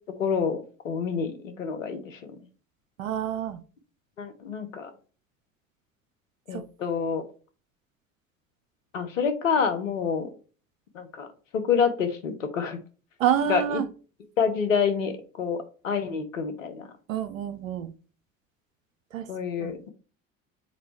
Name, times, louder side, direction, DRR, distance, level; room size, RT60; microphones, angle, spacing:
voice 1, 0.2-2.2 4.2-4.9 6.5-7.2 8.9-10.3 10.9-11.3 11.5-12.8 13.5-13.6 14.4-15.1 15.4-16.9 19.3-19.9, left 6 dB, 90° left, 0.9 m, -27 dB
voice 2, 3.0-3.6 6.5-6.6 13.2-13.9 17.1-17.9 19.1-19.3 19.6-19.7, right 10 dB, 85° right, 0.7 m, -27 dB
6.7 x 4.4 x 3.2 m
hypercardioid pair, 60°, 38 cm